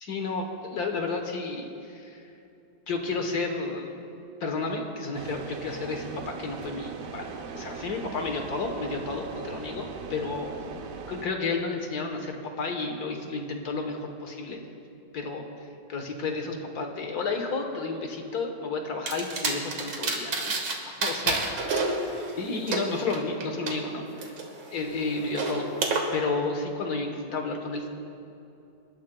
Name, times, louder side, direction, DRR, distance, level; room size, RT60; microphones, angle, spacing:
voice 1, 0.0-2.2 2.9-3.9 4.4-10.7 11.1-14.6 15.1-15.4 15.9-20.6 20.9-24.3 24.7-25.7 26.1-27.9, left 3 dB, 60° left, 3 dB, 1.6 m, -32 dB
sound 1, 5.1-11.3, right 5 dB, 60° right, 1.0 m, -39 dB
sound 2, 19.1-20.7 21.0-23.7 24.2-26.0, right 3 dB, 80° right, 2.1 m, -30 dB
26.5 x 12.5 x 2.2 m, 2.8 s
omnidirectional pair, 1.9 m